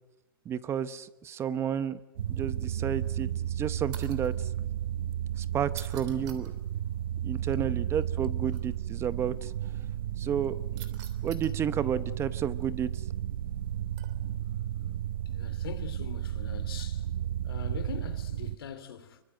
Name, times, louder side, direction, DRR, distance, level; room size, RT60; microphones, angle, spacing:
voice 1, 0.4-2.0 2.3-4.5 5.4-6.5 7.2-9.5 10.2-10.8 11.2-13.0, right 8 dB, 20° right, 0.8 m, -32 dB
sound 1, 2.2-18.6, right 11 dB, 70° right, 1.0 m, -33 dB
sound 2, 3.9-4.4 5.7-6.5 8.5-8.6 10.8-11.6 14.0-14.4 16.8-17.0 17.9-18.2, right 12 dB, 45° right, 3.2 m, -48 dB
voice 2, 15.2-17.1 17.4-19.2, left 8 dB, 75° left, 2.9 m, -43 dB
26.0 x 24.0 x 7.9 m
hypercardioid pair, 135°, 12 cm